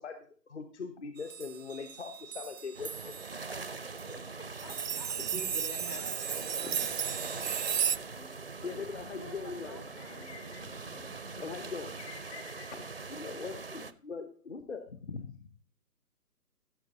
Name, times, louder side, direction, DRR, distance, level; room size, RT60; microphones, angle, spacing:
voice 1, 0.0-3.1 6.6-6.9 8.6-10.6 11.4-15.6, left 5 dB, 45° left, 8 dB, 1.1 m, -42 dB
sound 1, 1.2-3.3 4.0-4.2 4.5-8.0, right 8 dB, 85° right, 0.6 m, -35 dB
sound 2, 2.7-13.9, right 4 dB, 40° right, 0.4 m, -43 dB
voice 2, 4.0-5.2 5.9-6.3 9.0-10.6, right 1 dB, 20° left, 5 dB, 0.6 m, -51 dB
sound 3, 4.1-12.1, equal, 90° left, 6.3 m, -56 dB
voice 3, 5.2-7.0, left 1 dB, 70° left, 4 dB, 3.5 m, -45 dB
14.0 x 7.0 x 3.8 m, 0.43 s
figure-of-eight pair, 140°, 48 cm